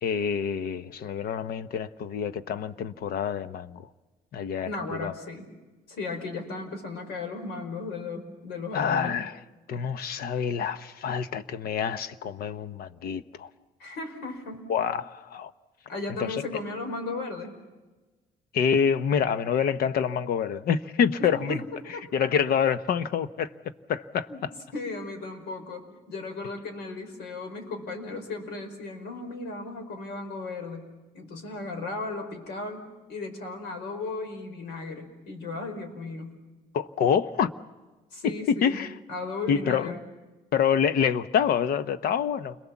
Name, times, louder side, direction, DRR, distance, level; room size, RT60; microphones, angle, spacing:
voice 1, 0.0-3.9 4.3-5.1 8.7-9.4 9.7-13.5 14.7-15.5 16.2-16.3 18.5-21.6 22.1-23.5 23.9-24.3 36.7-37.5 38.5-38.9 39.5-39.9 40.5-42.6, left 7 dB, 65° left, 1.0 m, -26 dB
voice 2, 4.6-5.5 5.9-9.2 13.8-14.7 15.9-17.6 21.2-22.1 24.3-24.4 24.7-30.9 31.1-36.4 38.1-40.0, left 3 dB, 80° left, 5.1 m, -36 dB
29.0 x 22.0 x 7.3 m
cardioid pair, 110°, 17 cm